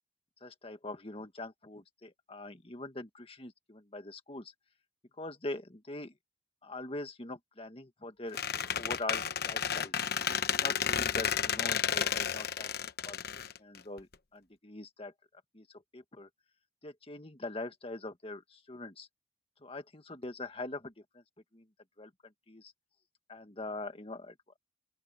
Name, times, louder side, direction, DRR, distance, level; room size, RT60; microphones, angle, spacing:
voice 1, 0.4-4.5 5.2-6.1 6.6-8.4 8.7-9.9 10.5-13.2 13.4-15.1 15.5-16.3 16.8-19.1 19.6-21.2 21.5-21.7 22.0-22.7 23.3-24.6, left 2 dB, 30° left, 1.7 m, -43 dB
Squeak, 8.4-14.1, left 8 dB, 60° left, 1.0 m, -32 dB
open air
head